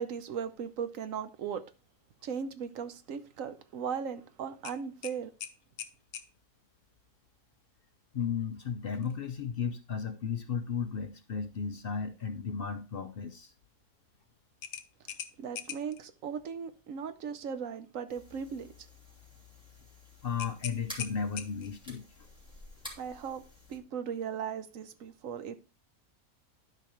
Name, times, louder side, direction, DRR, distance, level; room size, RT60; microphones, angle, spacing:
voice 1, 0.0-1.7 2.2-5.3 15.4-18.9 23.0-23.4 23.7-25.6, right 7 dB, 65° right, 1.1 m, -37 dB
sound 1, 4.6-6.3 8.9-9.2 9.6-9.7 14.6-16.0 20.4-21.8, left 9 dB, 90° left, 1.3 m, -42 dB
voice 2, 8.1-13.5 20.2-22.3, left 6 dB, 65° left, 0.6 m, -34 dB
sound 2, 18.1-23.8, left 1 dB, 5° right, 2.8 m, -51 dB
12.0 x 5.0 x 3.0 m
omnidirectional pair, 1.6 m